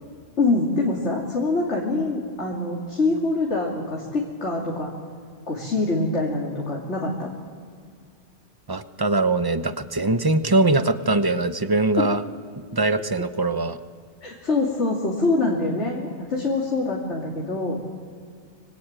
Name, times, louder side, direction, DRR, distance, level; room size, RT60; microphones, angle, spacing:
voice 1, 0.4-4.9 5.5-7.3 12.0-12.1 14.2-17.8, left 2 dB, 70° left, -3 dB, 3.2 m, -24 dB
voice 2, 8.7-12.2 12.7-13.8, right 2 dB, 20° right, 11 dB, 0.9 m, -22 dB
25.0 x 24.5 x 9.0 m, 2.1 s
omnidirectional pair, 1.2 m